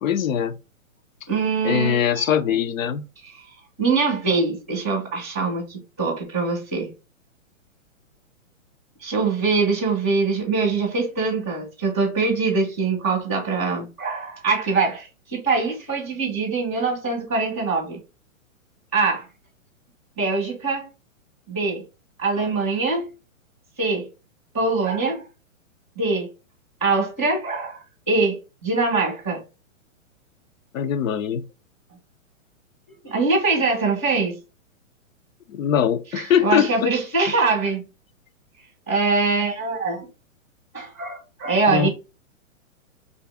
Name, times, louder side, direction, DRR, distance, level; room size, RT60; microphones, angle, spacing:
voice 1, 0.0-0.6 1.6-3.0 30.7-31.5 35.5-36.9 41.7-41.9, left 8 dB, 75° left, 0.6 m, -22 dB
voice 2, 1.3-2.3 3.2-3.3 3.8-6.9 9.0-18.0 18.9-19.2 20.2-20.9 21.5-21.8 22.2-23.1 23.8-24.1 24.5-25.2 26.0-26.3 26.8-27.8 28.1-29.4 33.0-34.4 36.1-37.8 38.9-40.1 40.7-41.9, right 4 dB, 15° left, 0.4 m, -23 dB
2.6 x 2.4 x 3.4 m
hypercardioid pair, 170°, 40 cm